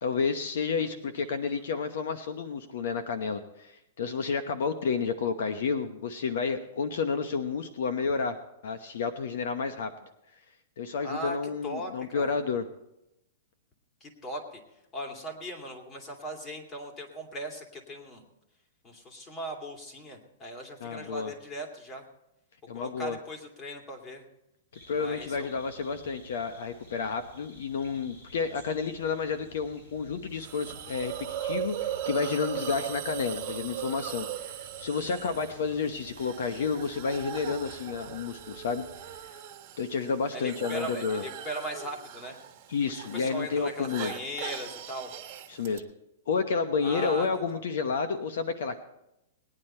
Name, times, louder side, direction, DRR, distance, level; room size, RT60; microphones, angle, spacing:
voice 1, 0.0-8.4 8.6-9.9 10.8-12.6 20.8-21.3 22.7-23.2 24.9-31.1 31.4-38.8 39.2-39.4 39.8-41.2 42.7-44.1 45.5-45.9 46.3-48.8, left 5 dB, 70° left, 9 dB, 0.9 m, -30 dB
voice 2, 11.0-11.4 11.6-12.3 14.0-14.6 14.9-18.2 18.8-22.0 22.7-24.2 24.9-25.6 35.0-35.4 40.3-42.4 42.9-45.1 46.8-47.6, equal, 25° left, 2 dB, 2.4 m, -39 dB
sound 1, 24.7-39.2, left 1 dB, 85° left, 5.8 m, -53 dB
Hiss, 30.4-45.8, right 11 dB, 35° right, 1.3 m, -39 dB
19.0 x 9.9 x 4.4 m, 0.87 s
hypercardioid pair, 150°, 0 cm